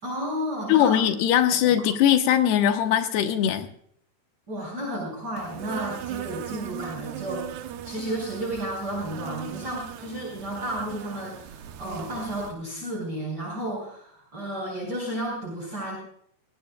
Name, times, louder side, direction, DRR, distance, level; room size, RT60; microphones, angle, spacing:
voice 1, 0.0-1.0 1.7-1.8 4.5-16.0, right 1 dB, 25° right, -5 dB, 5.9 m, -32 dB
voice 2, 0.7-3.7, left 10 dB, 75° left, 7 dB, 3.0 m, -21 dB
Insect, 5.4-12.6, right 10 dB, 75° right, 2.7 m, -38 dB
21.0 x 17.0 x 2.3 m, 0.65 s
omnidirectional pair, 4.9 m